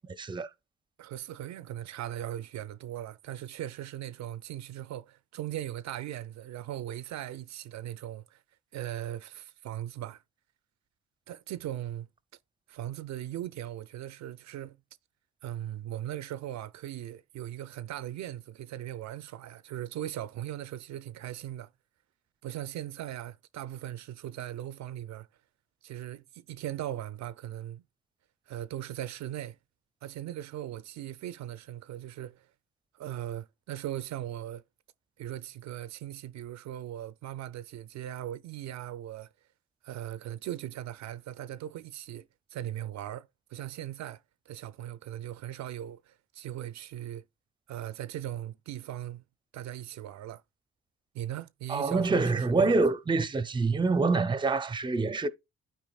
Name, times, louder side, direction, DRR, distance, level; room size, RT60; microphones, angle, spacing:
voice 1, 0.1-0.5 51.7-55.3, right 3 dB, 15° right, 0.5 m, -26 dB
voice 2, 1.0-8.4 8.7-10.2 11.3-12.1 12.7-14.8 15.4-21.7 22.4-25.3 25.8-27.8 28.5-29.6 30.0-32.5 32.9-34.6 35.2-39.3 39.8-47.2 47.7-49.2 49.5-50.4 51.1-52.8, right 12 dB, 65° right, 0.5 m, -39 dB
12.5 x 4.6 x 2.3 m
cardioid pair, 90°, 30 cm